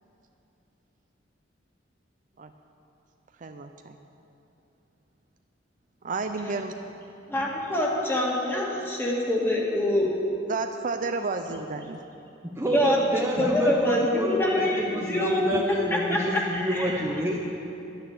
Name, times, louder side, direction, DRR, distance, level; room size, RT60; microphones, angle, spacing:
voice 1, 3.4-4.0 6.0-6.7 10.5-12.0, right 4 dB, 45° right, 6 dB, 0.5 m, -31 dB
voice 2, 7.3-10.1 12.7-13.0 13.4-16.9, left 1 dB, 15° left, -3 dB, 1.9 m, -25 dB
voice 3, 12.6-17.4, equal, 15° right, -2 dB, 0.9 m, -28 dB
11.0 x 9.6 x 7.9 m, 2.9 s
head